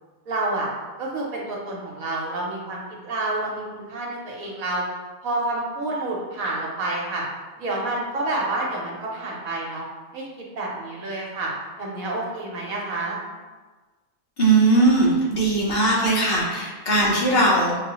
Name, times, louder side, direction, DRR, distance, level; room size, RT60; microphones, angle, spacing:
voice 1, 0.3-0.7 1.0-4.8 5.2-7.2 7.6-9.8 10.1-11.5 11.8-13.2, right 2 dB, 65° right, -3 dB, 1.2 m, -29 dB
voice 2, 14.4-17.8, right 2 dB, 45° left, -4 dB, 1.0 m, -19 dB
5.9 x 2.2 x 2.9 m, 1.3 s
omnidirectional pair, 1.6 m